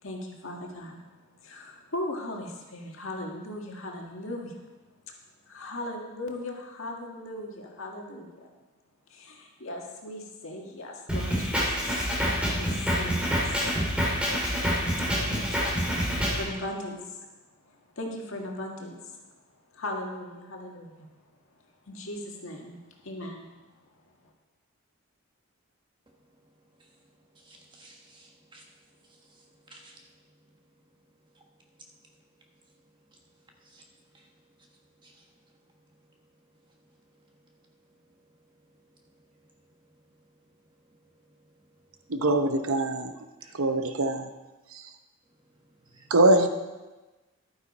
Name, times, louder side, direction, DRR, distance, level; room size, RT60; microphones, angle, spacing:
voice 1, 0.0-1.1 1.4-4.6 5.1-5.2 5.4-8.5 9.1-12.3 12.5-14.9 15.2-17.2 17.7-19.0 19.7-21.1 21.9-23.5, left 1 dB, 70° left, 0 dB, 1.8 m, -39 dB
Drum kit, 11.1-16.4, equal, 5° right, 2.2 m, -27 dB
voice 2, 27.5-28.6 29.7-30.0 33.7-33.8 35.0-35.1 43.4-43.5 45.9-46.1, right 2 dB, 20° right, 0 dB, 1.4 m, -54 dB
voice 3, 42.1-43.1 43.5-44.3 44.7-44.8 46.1-46.5, right 1 dB, 80° right, 8 dB, 0.8 m, -23 dB
11.5 x 9.6 x 4.2 m, 1.2 s
head